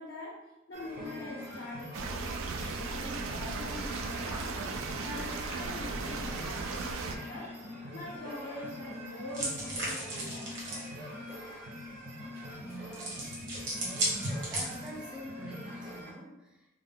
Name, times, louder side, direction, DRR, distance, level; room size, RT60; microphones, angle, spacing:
voice 1, 0.0-4.6 5.0-7.6 7.9-11.1, left 2 dB, 70° left, -4 dB, 0.5 m, -44 dB
sound 1, 0.7-16.1, left 1 dB, 45° right, 0.6 m, -44 dB
sound 2, 1.9-7.2, right 4 dB, 85° right, 0.3 m, -36 dB
sound 3, 9.3-10.9 12.9-15.0, right 1 dB, 65° right, 1.0 m, -35 dB
voice 2, 12.6-13.3 13.8-16.7, right 1 dB, 5° right, -2 dB, 0.5 m, -46 dB
2.2 x 2.1 x 3.4 m, 0.97 s
head